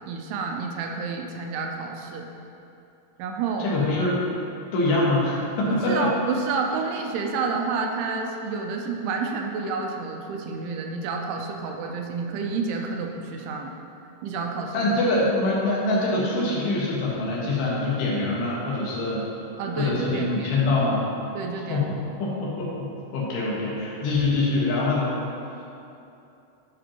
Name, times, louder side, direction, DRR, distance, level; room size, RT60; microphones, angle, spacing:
voice 1, 0.1-2.3 3.2-3.7 5.9-13.8 14.2-14.9 19.6-20.6 21.3-21.9, right 4 dB, 80° right, 2 dB, 2.6 m, -29 dB
voice 2, 3.6-4.2 4.7-6.1 14.7-19.2 19.8-21.1 21.5-21.9 22.2-25.2 25.6-25.7, left 2 dB, 85° left, -6 dB, 3.6 m, -24 dB
12.0 x 5.1 x 2.9 m, 2.7 s
omnidirectional pair, 4.7 m